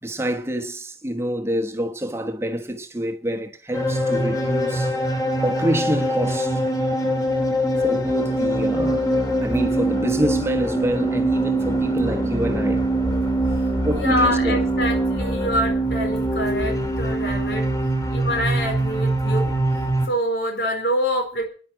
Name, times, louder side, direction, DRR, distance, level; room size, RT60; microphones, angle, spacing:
voice 1, 0.0-4.9 5.4-6.6 7.0-7.1 7.8-9.1 9.4-12.9 13.5-14.6 18.1-18.3, equal, 15° right, 1.3 m, -27 dB
sound 1, 3.7-20.1, right 1 dB, 15° left, 2.6 m, -23 dB
voice 2, 13.9-17.7 18.1-19.5 20.0-21.4, equal, 60° left, 4.6 m, -25 dB
10.5 x 9.4 x 9.7 m
head